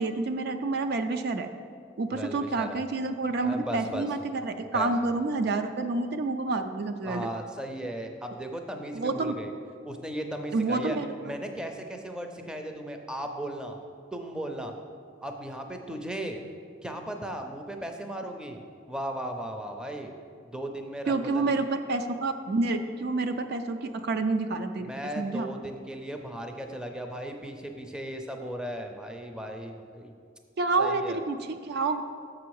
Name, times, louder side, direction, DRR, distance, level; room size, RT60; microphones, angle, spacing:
voice 1, 0.0-1.5 2.0-7.3 8.9-9.4 10.5-11.1 21.1-25.5 30.6-32.0, right 3 dB, 55° right, 8 dB, 0.4 m, -28 dB
voice 2, 2.1-2.8 3.4-4.1 4.7-4.9 7.0-9.5 9.8-13.8 14.1-14.7 15.2-16.4 16.8-18.6 18.9-20.1 20.4-21.6 24.8-30.1 30.8-31.2, right 1 dB, 5° right, 4 dB, 0.5 m, -36 dB
6.8 x 6.1 x 4.7 m, 2.2 s
head